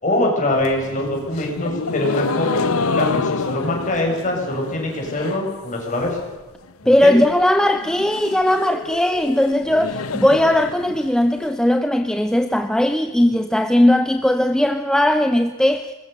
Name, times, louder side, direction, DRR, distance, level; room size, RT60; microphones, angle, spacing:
voice 1, 0.0-6.2 6.8-7.2 13.2-13.3, left 1 dB, 35° left, -1 dB, 7.1 m, -23 dB
sound 1, 0.5-5.6 5.8-6.4 6.7-6.8 7.0-7.1 7.4-11.4, left 4 dB, 75° left, 0.9 m, -27 dB
voice 2, 6.9-15.9, left 1 dB, 5° left, 7 dB, 0.8 m, -18 dB
21.5 x 21.5 x 6.8 m, 1.3 s
head